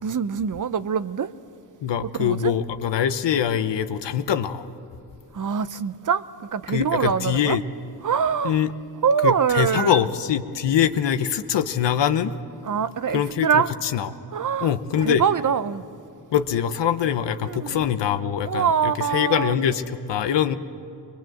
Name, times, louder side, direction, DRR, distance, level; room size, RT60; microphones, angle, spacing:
voice 1, 0.0-1.3 2.2-2.5 5.3-7.6 8.0-8.6 9.0-10.0 12.6-13.7 14.3-14.7 15.0-15.8 17.4-17.8 18.4-19.5, right 7 dB, 45° right, 0.8 m, -24 dB
voice 2, 1.8-4.7 6.7-7.6 8.4-8.7 9.2-12.3 13.1-14.1 14.6-15.2 16.3-20.6, left 9 dB, 85° left, 0.9 m, -23 dB
22.0 x 22.0 x 7.8 m
cardioid pair, 55°, 42 cm